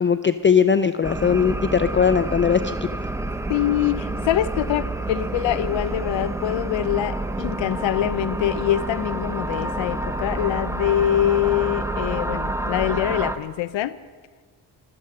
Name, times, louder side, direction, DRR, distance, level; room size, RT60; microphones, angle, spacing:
voice 1, 0.0-2.7, left 6 dB, 25° left, 0.5 m, -19 dB
sound 1, 1.0-13.4, right 2 dB, 5° right, 0.9 m, -28 dB
voice 2, 3.5-13.9, left 12 dB, 80° left, 0.6 m, -24 dB
24.5 x 8.5 x 6.6 m
cardioid pair, 75°, 45 cm